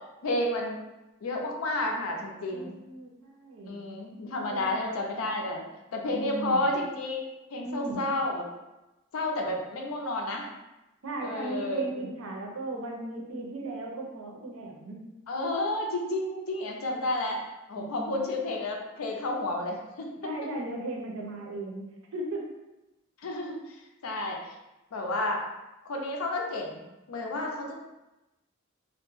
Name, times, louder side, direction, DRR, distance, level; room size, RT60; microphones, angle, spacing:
voice 1, 0.2-0.8 1.2-2.7 3.7-5.6 5.9-7.2 7.5-8.4 9.1-10.5 11.2-11.8 15.3-17.4 17.7-20.1 23.2-23.6 24.0-24.4 24.9-25.4 25.9-26.8 27.1-27.8, left 2 dB, 80° left, 1 dB, 0.5 m, -31 dB
voice 2, 2.5-3.8 4.5-4.8 6.1-6.6 7.6-8.1 11.0-15.0 17.8-18.3 20.2-22.4, right 2 dB, 70° right, -1 dB, 0.6 m, -37 dB
2.2 x 2.1 x 3.1 m, 0.99 s
head